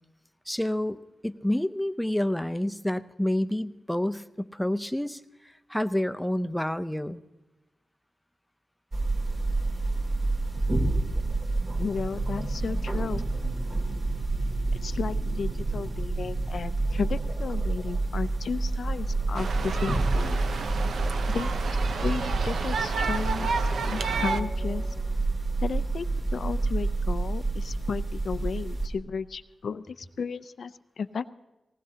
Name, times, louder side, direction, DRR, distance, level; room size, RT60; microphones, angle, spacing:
voice 1, 0.5-1.0 1.2-7.2, left 1 dB, 5° left, 12 dB, 0.6 m, -29 dB
sound 1, 8.9-28.9, right 2 dB, 50° right, 2.8 m, -28 dB
voice 2, 11.8-13.2 14.7-20.4 21.3-21.6 22.0-24.8 25.6-31.3, left 5 dB, 75° left, 12 dB, 0.4 m, -34 dB
sound 2, 19.3-24.4, right 5 dB, 85° right, 0.7 m, -31 dB
19.5 x 18.5 x 2.8 m, 1.1 s
cardioid pair, 65°, 0 cm